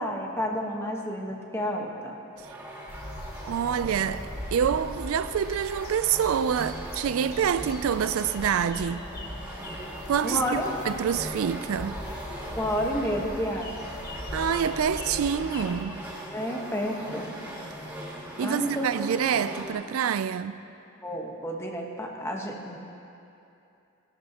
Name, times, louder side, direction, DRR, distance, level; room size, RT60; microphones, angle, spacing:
voice 1, 0.0-2.2 10.2-10.8 12.6-13.9 16.3-17.3 18.4-18.9 21.0-22.8, equal, 10° left, 1.2 m, -30 dB
sound 1, 2.4-19.7, equal, 10° right, 2.9 m, -40 dB
sound 2, 2.9-15.9, left 1 dB, 45° left, 1.5 m, -40 dB
voice 2, 3.4-4.2 4.5-9.1 10.1-12.0 14.3-16.0 18.4-20.6, right 8 dB, 80° right, 0.4 m, -27 dB
20.0 x 12.5 x 2.9 m
head